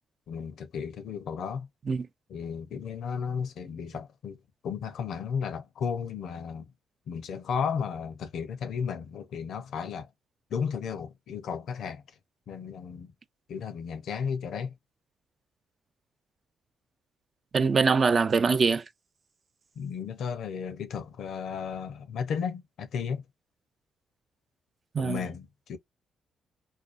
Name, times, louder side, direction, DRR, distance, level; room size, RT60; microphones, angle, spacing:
voice 1, 0.3-1.7 2.3-4.4 4.6-6.7 7.1-10.1 10.5-12.0 12.5-13.1 13.5-14.8 19.8-23.2 25.0-25.8, left 6 dB, 70° left, 0.5 m, -34 dB
voice 2, 17.5-18.8 24.9-25.2, right 5 dB, 45° right, 0.4 m, -23 dB
2.5 x 2.2 x 2.4 m
cardioid pair, 75°, 0 cm